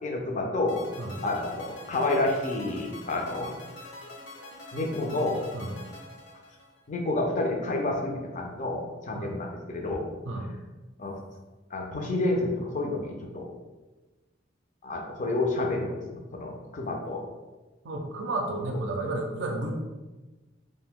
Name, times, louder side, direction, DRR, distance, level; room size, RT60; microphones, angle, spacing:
voice 1, 0.0-0.8 1.2-3.5 4.7-5.4 6.9-10.1 11.0-11.2 11.7-13.5 14.8-17.3, left 2 dB, 40° left, 1 dB, 0.5 m, -29 dB
sound 1, 0.7-7.0, left 2 dB, 85° left, 0.6 m, -45 dB
voice 2, 17.8-19.7, right 2 dB, 70° right, 2 dB, 0.4 m, -32 dB
2.6 x 2.1 x 3.5 m, 1.2 s
head